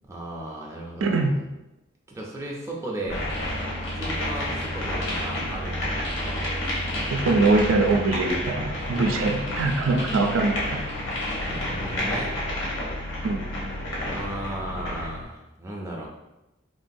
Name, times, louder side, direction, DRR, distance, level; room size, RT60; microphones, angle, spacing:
voice 1, 0.0-1.3 2.1-3.2 4.0-6.4 11.4-12.4 13.9-16.1, right 1 dB, 15° right, -3 dB, 0.4 m, -35 dB
voice 2, 1.0-1.3 7.1-10.8 13.2-13.4, right 3 dB, 80° right, 3 dB, 0.4 m, -23 dB
sound 1, 3.1-15.2, left 1 dB, 90° left, 0.8 m, -31 dB
sound 2, 3.1-15.2, equal, 65° left, 0.5 m, -36 dB
3.1 x 2.3 x 2.6 m, 0.97 s
head